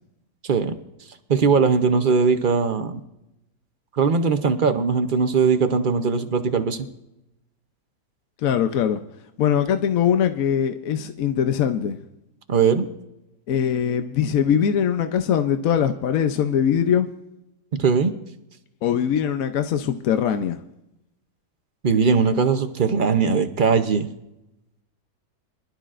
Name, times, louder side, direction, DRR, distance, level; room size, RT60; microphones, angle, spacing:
voice 1, 0.4-0.7 1.3-3.0 4.0-6.9 12.5-12.9 17.7-18.1 21.8-24.1, right 5 dB, 45° right, 0.6 m, -20 dB
voice 2, 8.4-9.0 9.4-12.0 13.5-17.1 18.8-20.6, left 8 dB, 65° left, 1.0 m, -21 dB
24.0 x 12.5 x 2.5 m
omnidirectional pair, 1.8 m